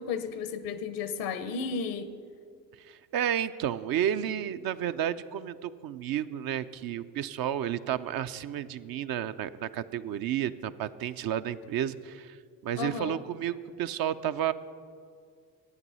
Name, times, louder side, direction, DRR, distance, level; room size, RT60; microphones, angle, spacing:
voice 1, 0.0-2.1 12.8-13.2, left 5 dB, 85° left, 11 dB, 0.8 m, -33 dB
voice 2, 2.8-12.4 12.6-14.5, right 10 dB, 60° right, 12 dB, 0.6 m, -31 dB
12.0 x 9.1 x 5.5 m, 2.2 s
supercardioid pair, 55°, 41 cm